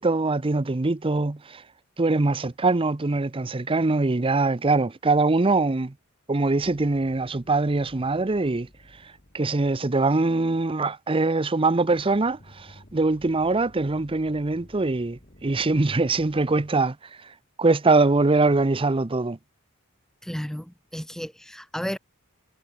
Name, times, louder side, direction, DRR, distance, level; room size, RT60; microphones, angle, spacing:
voice 1, 0.0-1.6 2.0-5.9 6.3-8.7 9.3-17.0 17.6-19.4, right 3 dB, 25° right, 0.6 m, -23 dB
sound 1, 6.6-10.9 11.9-16.7, equal, 35° left, 4.1 m, -53 dB
voice 2, 20.2-22.0, equal, ahead, 1.1 m, -33 dB
head